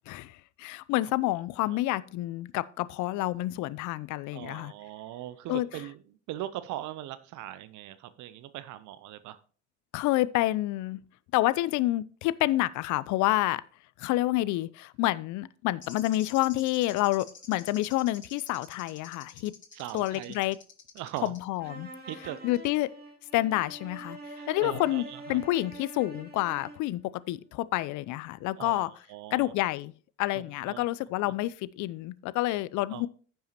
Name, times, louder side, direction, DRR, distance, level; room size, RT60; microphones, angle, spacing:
voice 1, 0.1-4.7 5.5-5.7 9.9-11.0 11.3-13.6 14.0-19.5 19.9-20.6 21.2-21.9 22.4-22.9 23.3-24.2 24.5-27.0 27.3-28.9 29.3-29.9 30.2-33.1, left 17 dB, 55° left, 0.6 m, -28 dB
voice 2, 4.3-6.0 6.3-9.4 19.7-20.3 21.0-21.3 22.1-22.4 24.4-25.4 28.6-29.5 30.3-30.8 32.9-33.0, right 13 dB, 55° right, 0.7 m, -40 dB
sound 1, 15.8-21.4, left 6 dB, 30° left, 2.4 m, -48 dB
sound 2, 21.6-26.9, right 1 dB, 25° right, 2.4 m, -45 dB
15.0 x 5.7 x 2.9 m
hypercardioid pair, 65°, 36 cm